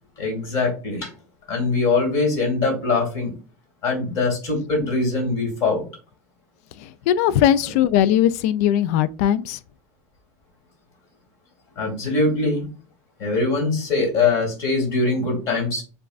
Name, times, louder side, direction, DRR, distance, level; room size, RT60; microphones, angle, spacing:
voice 1, 0.2-1.1 1.5-3.3 3.8-5.9 11.8-12.7 13.2-15.8, left 3 dB, 40° left, 2.2 m, -22 dB
voice 2, 6.8-9.6, left 11 dB, 70° left, 0.3 m, -19 dB
6.9 x 2.4 x 2.4 m
cardioid pair, 170°, 8 cm